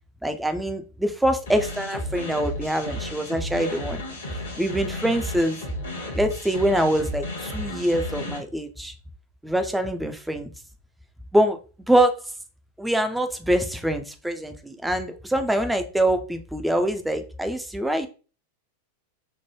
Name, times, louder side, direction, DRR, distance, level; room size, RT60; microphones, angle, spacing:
voice 1, 0.2-4.0 4.6-5.6 6.1-8.9 9.4-10.5 11.3-11.6 11.9-12.2 12.8-18.1, right 1 dB, 5° right, 7 dB, 0.4 m, -24 dB
sound 1, 1.5-8.4, left 1 dB, 65° left, 0.9 m, -33 dB
3.2 x 2.1 x 3.0 m, 0.35 s
figure-of-eight pair, 90°, 0 cm